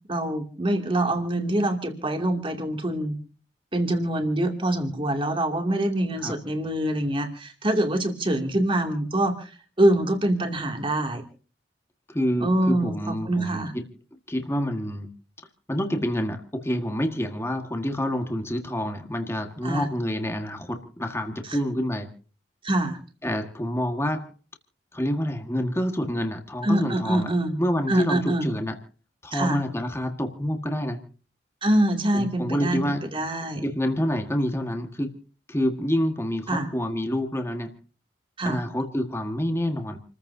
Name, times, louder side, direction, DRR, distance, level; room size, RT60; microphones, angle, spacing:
voice 1, 0.1-3.2 3.7-9.5 9.8-11.2 12.4-13.7 19.6-19.9 22.6-23.0 26.6-27.6 27.9-28.5 29.3-29.6 31.6-33.6 36.5-36.7 38.4-38.6, right 1 dB, 30° right, 4 dB, 2.7 m, -25 dB
voice 2, 12.1-13.8 14.3-15.1 15.7-22.1 23.2-24.3 24.9-27.3 27.6-28.8 29.2-31.0 32.1-33.1 33.6-35.2 35.5-37.7 38.4-40.0, equal, 15° left, 5 dB, 1.7 m, -27 dB
29.0 x 14.5 x 2.8 m, 0.39 s
head